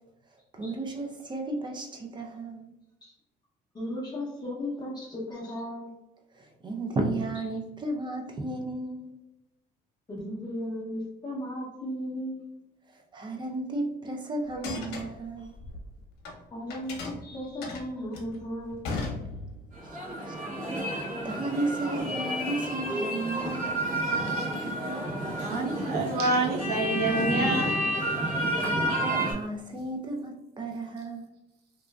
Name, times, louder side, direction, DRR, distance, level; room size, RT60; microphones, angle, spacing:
voice 1, 0.5-2.7 6.3-9.1 12.9-15.6 20.0-20.6 20.9-23.9 28.5-31.3, right 2 dB, 25° right, 2 dB, 0.4 m, -34 dB
voice 2, 3.7-5.9 10.1-12.5 16.5-18.9, equal, 25° left, -5 dB, 0.6 m, -36 dB
sound 1, 14.5-16.4 16.7-19.8, left 3 dB, 85° left, 0.7 m, -37 dB
sound 2, 19.7-29.3, right 1 dB, 50° right, 1.5 m, -30 dB
voice 3, 24.1-24.5 25.4-27.7, right 2 dB, 70° right, 1 dB, 0.8 m, -28 dB
2.9 x 2.4 x 2.2 m, 0.92 s
cardioid pair, 110°, 17 cm